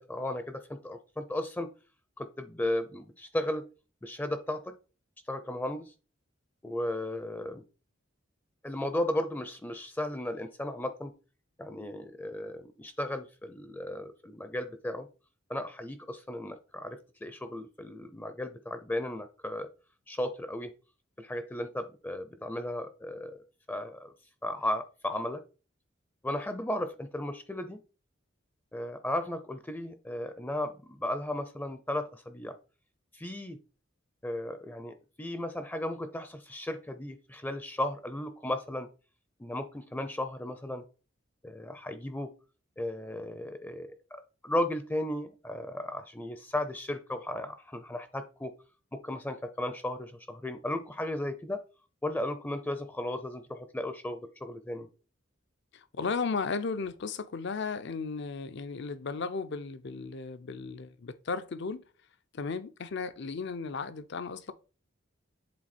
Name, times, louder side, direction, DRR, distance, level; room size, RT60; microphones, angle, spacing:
voice 1, 0.0-1.7 2.2-3.6 4.0-4.7 5.3-5.9 6.6-7.6 8.6-11.1 11.6-15.1 15.5-19.7 20.1-20.7 21.2-24.1 24.4-25.4 26.2-27.8 28.7-32.6 33.1-33.6 34.2-38.9 39.4-40.8 41.4-42.3 42.8-48.5 48.9-51.6 52.0-54.9, left 1 dB, 10° left, 0.5 m, -35 dB
voice 2, 55.7-61.8 62.3-64.5, left 4 dB, 65° left, 0.6 m, -35 dB
7.6 x 3.7 x 4.2 m
head